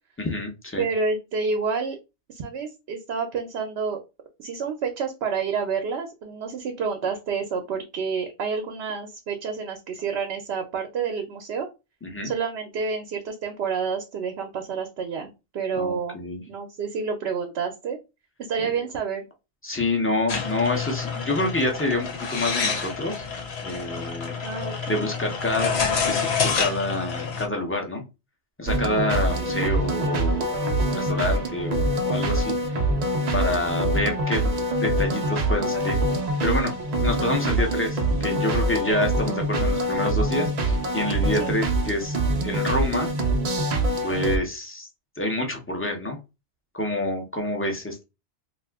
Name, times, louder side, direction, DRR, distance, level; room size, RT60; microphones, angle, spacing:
voice 1, 0.2-0.8 12.0-12.3 15.8-16.4 18.6-18.8 19.6-23.2 23.6-24.3 24.9-28.0 28.6-32.5 33.3-34.5 34.8-36.0 36.4-36.7 37.0-42.2 42.4-43.1 44.0-44.9 45.2-46.2 46.7-48.0, left 1 dB, 15° left, 1 dB, 0.5 m, -27 dB
voice 2, 0.8-2.0 2.3-4.0 4.4-11.7 12.2-16.2 16.5-18.0 18.4-19.3 24.4-25.0 41.3-41.5, right 5 dB, 80° right, 4 dB, 0.8 m, -29 dB
sound 1, 20.3-27.5, left 5 dB, 80° left, 1.0 m, -28 dB
sound 2, 28.7-44.4, right 1 dB, 50° right, 0.5 m, -24 dB
2.7 x 2.4 x 3.4 m, 0.27 s
omnidirectional pair, 1.1 m